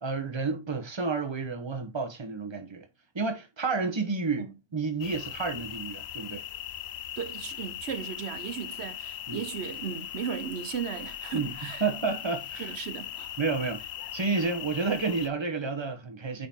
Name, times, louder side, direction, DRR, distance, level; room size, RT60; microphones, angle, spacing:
voice 1, 0.0-2.8 3.1-6.4 9.3-9.4 11.3-12.7 13.4-13.8 14.1-16.5, right 4 dB, 25° right, 1.1 m, -30 dB
sound 1, 5.0-15.3, left 11 dB, 85° left, 0.9 m, -39 dB
voice 2, 7.2-11.8 12.6-13.3, right 7 dB, 85° right, 1.0 m, -36 dB
8.7 x 4.0 x 2.8 m
omnidirectional pair, 1.1 m